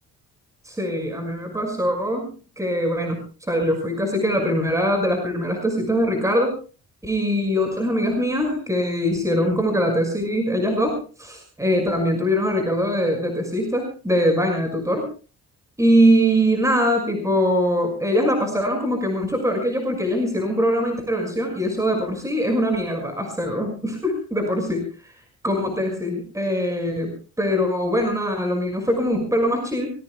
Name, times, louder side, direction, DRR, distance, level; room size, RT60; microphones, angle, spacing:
voice 1, 0.6-2.3 2.6-6.5 7.0-15.1 15.8-25.1 25.4-29.9, equal, 10° right, 2 dB, 5.9 m, -22 dB
24.5 x 21.5 x 2.3 m, 0.37 s
cardioid pair, 90°, 30 cm